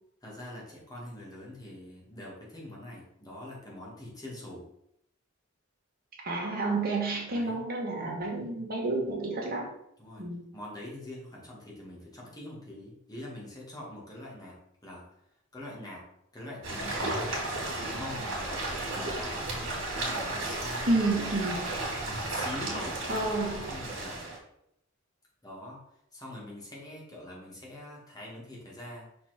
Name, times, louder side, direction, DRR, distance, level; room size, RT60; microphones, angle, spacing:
voice 1, 0.2-4.7 7.3-7.6 10.0-10.3 10.5-15.1 15.5-17.3 17.7-21.3 22.0-23.0 23.7-24.3 25.4-25.8 26.1-29.1, left 1 dB, 20° left, -4 dB, 2.1 m, -44 dB
voice 2, 6.2-9.7 10.2-10.4 20.9-21.7 23.1-23.7, right 2 dB, 50° right, -1 dB, 1.7 m, -30 dB
sound 1, 16.6-24.4, right 2 dB, 70° right, 2.3 m, -34 dB
5.8 x 4.3 x 4.4 m, 0.75 s
head